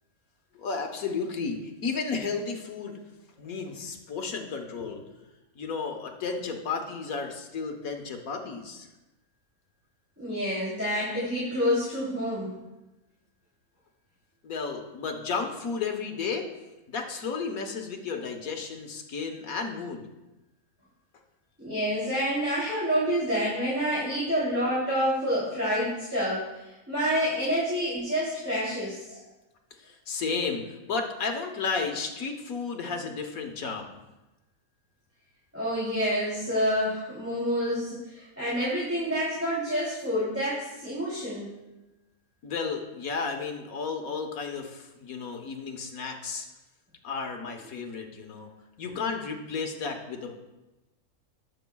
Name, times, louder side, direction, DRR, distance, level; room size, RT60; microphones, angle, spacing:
voice 1, 0.5-3.0 3.4-5.0 5.5-8.9 14.4-16.5 16.9-20.0 29.8-33.9 42.4-46.5 47.0-48.5 48.8-50.3, left 5 dB, 75° left, 3 dB, 1.6 m, -33 dB
voice 2, 10.2-12.5 21.6-29.2 35.5-41.5, equal, 10° right, -9 dB, 3.0 m, -28 dB
19.5 x 7.1 x 2.3 m, 1.0 s
omnidirectional pair, 1.5 m